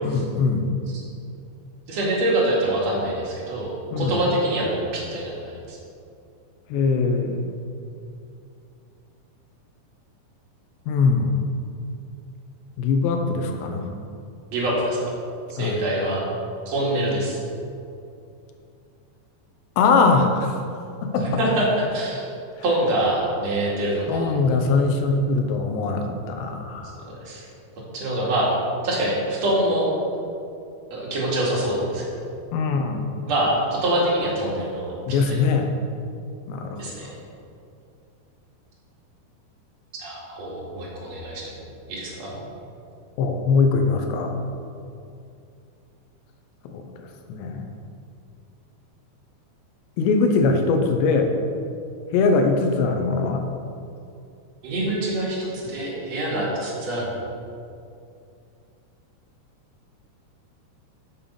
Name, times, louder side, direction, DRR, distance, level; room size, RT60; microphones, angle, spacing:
voice 1, 0.0-0.7 3.9-4.2 6.7-7.4 10.9-11.4 12.8-13.9 15.6-15.9 19.8-20.6 21.0-21.3 24.1-27.0 32.5-33.1 35.1-35.8 36.5-37.1 43.2-44.4 46.7-47.7 50.0-51.3 52.1-53.5, left 4 dB, 90° left, 5 dB, 3.0 m, -22 dB
voice 2, 1.9-5.8 14.5-15.1 15.5-16.2 16.7-17.4 21.2-22.3 22.6-24.3 27.2-27.5 27.9-28.5 28.8-29.9 30.9-32.0 33.3-35.0 35.3-35.4 36.8-37.1 40.0-41.5 41.9-42.4 54.6-57.1, right 1 dB, 45° right, -4 dB, 2.6 m, -25 dB
9.2 x 7.0 x 5.5 m, 2.6 s
omnidirectional pair, 4.9 m